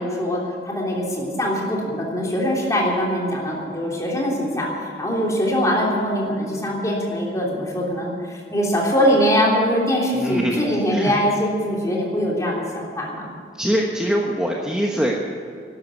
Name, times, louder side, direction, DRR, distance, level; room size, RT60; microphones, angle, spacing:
voice 1, 0.0-13.3, equal, 20° left, -3 dB, 3.2 m, -22 dB
voice 2, 10.1-10.6 10.9-11.1 13.6-15.3, equal, 5° right, -2 dB, 1.1 m, -23 dB
12.5 x 11.5 x 9.5 m, 2.3 s
head